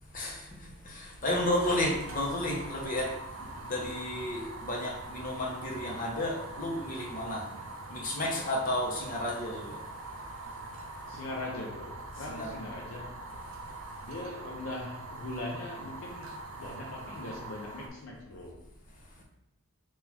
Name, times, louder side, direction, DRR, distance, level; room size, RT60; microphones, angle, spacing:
voice 1, 0.1-7.6 7.9-9.8 12.3-12.5, left 1 dB, 40° left, -2 dB, 0.8 m, -32 dB
Fire, 1.2-17.9, right 2 dB, 65° right, 0.6 m, -43 dB
voice 2, 11.1-13.2 14.0-18.6, left 2 dB, 65° left, -1 dB, 0.5 m, -40 dB
3.9 x 2.5 x 4.2 m, 0.85 s
head